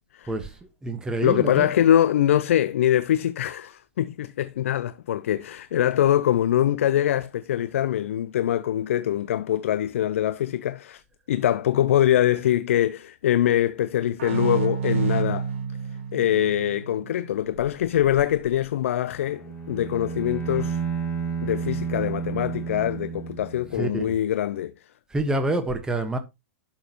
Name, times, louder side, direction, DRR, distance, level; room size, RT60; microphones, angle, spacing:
voice 1, 0.3-1.7 23.7-24.1 25.1-26.2, right 1 dB, 10° right, 1.4 m, -27 dB
voice 2, 1.2-11.0 11.3-15.5 16.1-20.8 21.4-24.7, left 11 dB, 65° left, 0.6 m, -23 dB
sound 1, 14.2-17.6, right 6 dB, 65° right, 1.8 m, -29 dB
Bowed string instrument, 19.1-23.9, right 6 dB, 15° left, 3.0 m, -31 dB
11.5 x 6.6 x 3.0 m
hypercardioid pair, 110°, 8 cm